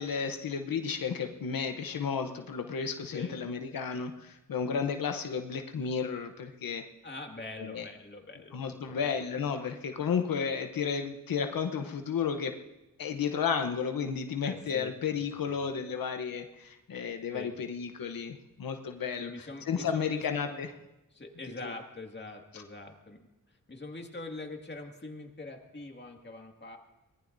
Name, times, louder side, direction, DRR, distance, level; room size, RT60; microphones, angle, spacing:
voice 1, 0.0-6.9 7.6-7.9 8.5-12.6 13.0-19.3 19.7-20.7 21.6-21.7 22.5-22.6, left 6 dB, 90° left, 6 dB, 0.9 m, -33 dB
voice 2, 7.0-9.1 14.4-15.6 17.3-17.5 19.2-20.6 21.1-26.8, left 2 dB, 30° left, 2 dB, 2.1 m, -44 dB
23.5 x 18.5 x 2.6 m, 0.98 s
wide cardioid pair, 80°, 33 cm